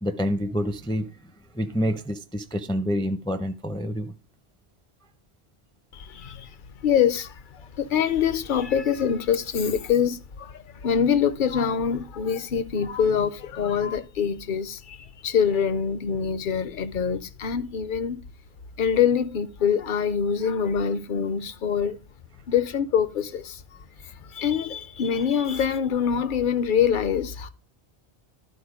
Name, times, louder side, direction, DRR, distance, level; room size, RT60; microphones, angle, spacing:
voice 1, 0.0-1.1 1.5-4.1, equal, 5° left, 0.4 m, -27 dB
voice 2, 5.9-6.6 6.8-18.2 18.8-22.0 22.5-27.5, left 7 dB, 55° left, 0.8 m, -25 dB
12.0 x 4.3 x 4.9 m
omnidirectional pair, 1.1 m